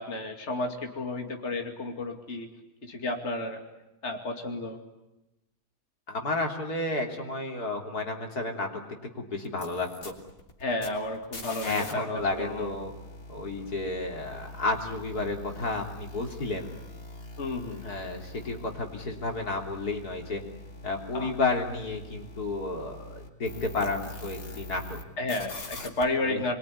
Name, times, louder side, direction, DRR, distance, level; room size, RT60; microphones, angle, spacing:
voice 1, 0.0-2.5 2.8-3.6 4.0-4.8 10.6-12.7 17.4-17.9 21.1-21.3 25.2-26.6, left 2 dB, 45° left, 3 dB, 2.8 m, -32 dB
voice 2, 6.1-8.8 9.2-10.1 11.6-12.9 13.3-16.7 17.8-20.4 20.8-25.0 26.2-26.4, left 3 dB, 80° left, 2 dB, 3.9 m, -31 dB
sound 1, 9.4-11.9 12.2-25.0 25.3-26.0, left 1 dB, 65° left, 3.7 m, -43 dB
26.5 x 22.5 x 10.0 m, 0.96 s
omnidirectional pair, 1.6 m